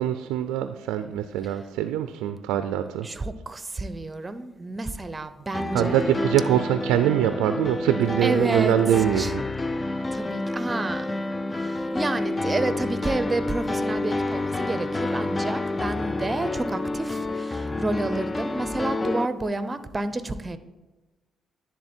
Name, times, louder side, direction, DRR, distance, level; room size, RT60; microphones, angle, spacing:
voice 1, 0.0-3.1 5.7-9.4, right 11 dB, 90° right, 10 dB, 0.3 m, -23 dB
voice 2, 3.0-6.0 8.2-8.7 9.2-9.3 10.1-11.1 11.6-20.6, right 2 dB, 25° right, 12 dB, 0.6 m, -30 dB
sound 1, 5.5-19.3, left 2 dB, 25° left, 0.4 m, -29 dB
10.0 x 3.7 x 4.4 m, 1.2 s
supercardioid pair, 65°, 0 cm